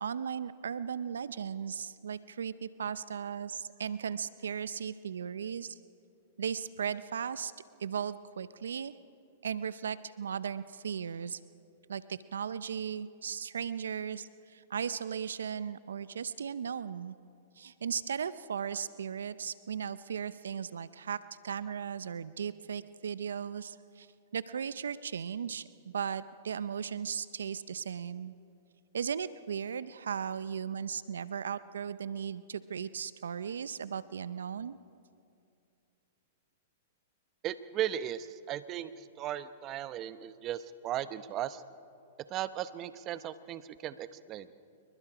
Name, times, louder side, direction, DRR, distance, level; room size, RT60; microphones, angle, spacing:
voice 1, 0.0-5.8 6.4-7.5 7.8-8.9 9.4-11.4 11.9-17.1 17.6-24.1 24.3-28.3 28.9-34.8, right 7 dB, 85° right, 16 dB, 0.6 m, -37 dB
voice 2, 37.4-41.6 42.3-44.5, right 11 dB, 35° right, 14 dB, 0.8 m, -37 dB
27.0 x 22.5 x 5.0 m, 2.5 s
hypercardioid pair, 125°, 0 cm